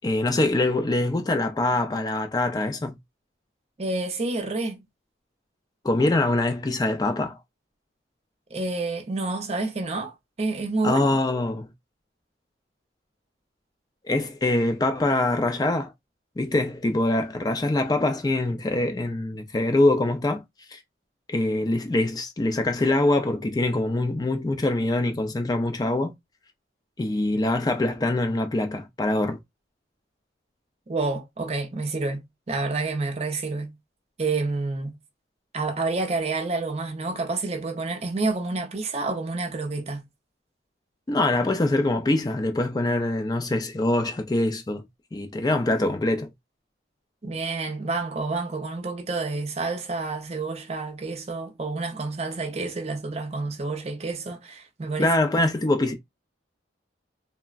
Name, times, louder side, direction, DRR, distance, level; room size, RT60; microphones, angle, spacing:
voice 1, 0.0-3.0 5.8-7.4 10.8-11.7 14.0-15.9 16.4-20.4 20.7-20.8 21.3-26.1 27.0-29.4 41.1-44.8 45.1-46.3 55.0-56.0, left 2 dB, 20° left, 0.3 m, -24 dB
voice 2, 3.8-4.8 8.5-11.1 30.9-33.7 34.2-35.0 35.5-40.0 47.2-55.1, right 3 dB, 35° right, 0.5 m, -29 dB
3.3 x 2.0 x 2.3 m
head